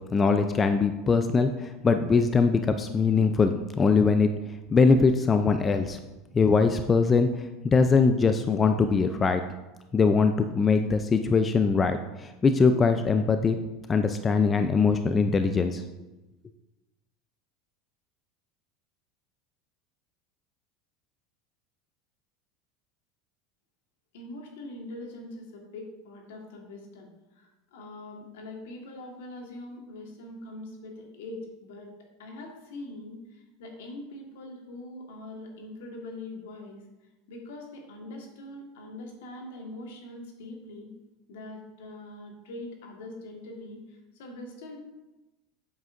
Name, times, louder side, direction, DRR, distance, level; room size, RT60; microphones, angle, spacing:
voice 1, 0.1-4.3 4.7-6.0 6.3-7.3 7.6-9.4 9.9-13.6 13.9-15.8, left 4 dB, 25° left, 8 dB, 0.5 m, -22 dB
voice 2, 24.1-27.1 27.3-31.9 32.2-36.8 37.3-40.9 41.3-44.8, left 2 dB, 80° left, 1 dB, 1.6 m, -42 dB
8.2 x 7.3 x 2.6 m, 1.0 s
hypercardioid pair, 100°, 0 cm